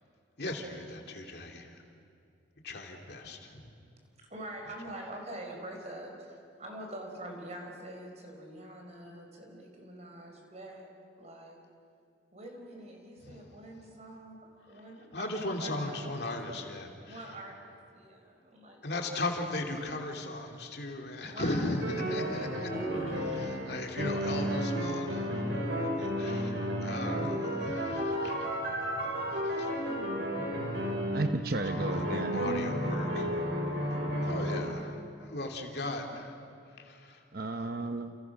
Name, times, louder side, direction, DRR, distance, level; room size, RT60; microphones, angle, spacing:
voice 1, 0.4-1.8 2.6-3.7 13.2-13.4 15.1-17.2 18.8-22.7 23.7-28.5 29.4-29.7 31.7-33.3 34.2-36.3 36.8-37.2, left 2 dB, 60° left, 2 dB, 2.9 m, -37 dB
voice 2, 4.3-10.9 11.2-11.6 12.3-14.4 14.7-16.2 17.1-19.2 21.1-23.7, right 1 dB, 35° right, 1 dB, 4.8 m, -45 dB
sound 1, 21.8-34.6, equal, 75° right, 7.4 m, -32 dB
voice 3, 31.1-32.5 37.3-38.2, right 2 dB, 50° right, 7 dB, 0.9 m, -33 dB
29.5 x 29.5 x 6.1 m, 2.4 s
head